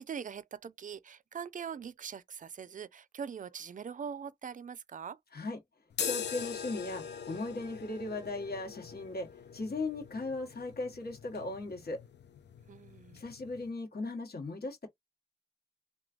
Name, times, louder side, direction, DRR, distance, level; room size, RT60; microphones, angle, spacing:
voice 1, 0.0-5.2 12.7-13.2, right 7 dB, 50° right, 0.4 m, -42 dB
sound 1, 5.9-13.7, left 7 dB, 90° left, 0.4 m, -42 dB
voice 2, 6.0-12.0 13.1-14.9, left 2 dB, 65° left, 1.2 m, -38 dB
3.1 x 2.3 x 2.4 m
cardioid pair, 45°, 17 cm